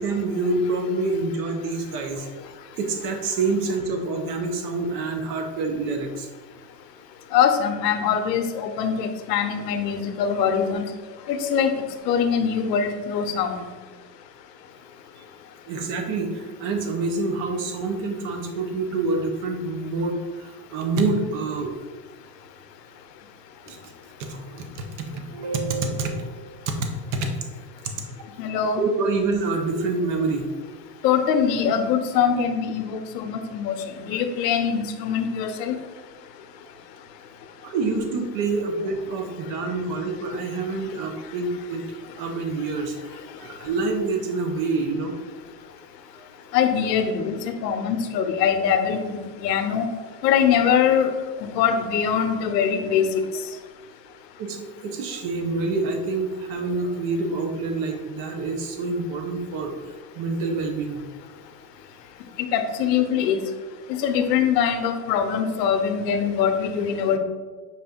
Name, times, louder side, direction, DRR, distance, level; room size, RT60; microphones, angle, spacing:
voice 1, 0.0-2.3 2.8-6.3 15.7-21.7 23.7-23.8 24.2-27.3 28.8-30.5 37.6-41.9 42.2-45.2 54.4-59.7 60.1-61.0 63.9-64.0, right 3 dB, 40° right, 4 dB, 0.7 m, -27 dB
voice 2, 7.3-10.8 11.3-11.7 12.1-13.6 28.4-28.8 31.0-35.8 46.5-49.9 50.2-51.1 51.4-53.1 62.5-63.5 63.9-67.2, left 7 dB, 90° left, 7 dB, 0.7 m, -23 dB
5.7 x 2.5 x 3.5 m, 1.4 s
supercardioid pair, 145°, 48 cm